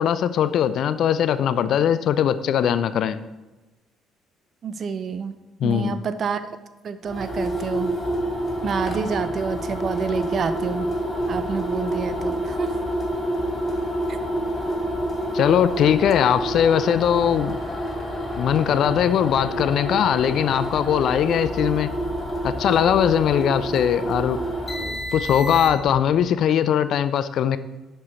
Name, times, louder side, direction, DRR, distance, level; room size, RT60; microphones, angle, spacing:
voice 1, 0.0-3.2 5.6-6.0 15.3-17.6 18.4-21.9 22.4-24.4 25.1-27.6, left 9 dB, 55° left, 14 dB, 0.4 m, -20 dB
voice 2, 4.6-5.4 5.6-6.4 6.8-8.0 8.6-10.9 11.3-12.7, right 6 dB, 45° right, 13 dB, 0.6 m, -28 dB
sound 1, 7.0-26.0, equal, 25° left, 2.5 m, -28 dB
11.5 x 4.6 x 4.3 m, 1.1 s
figure-of-eight pair, 50°, 0 cm